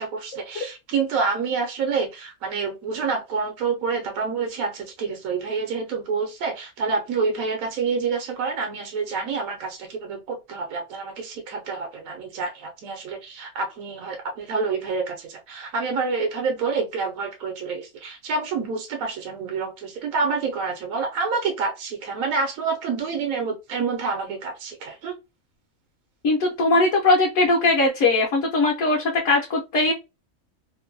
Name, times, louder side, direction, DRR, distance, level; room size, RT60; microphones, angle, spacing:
voice 1, 0.0-25.1, right 4 dB, 80° right, 1.1 m, -28 dB
voice 2, 26.2-29.9, left 2 dB, 70° left, 1.0 m, -20 dB
2.9 x 2.1 x 2.5 m
omnidirectional pair, 1.4 m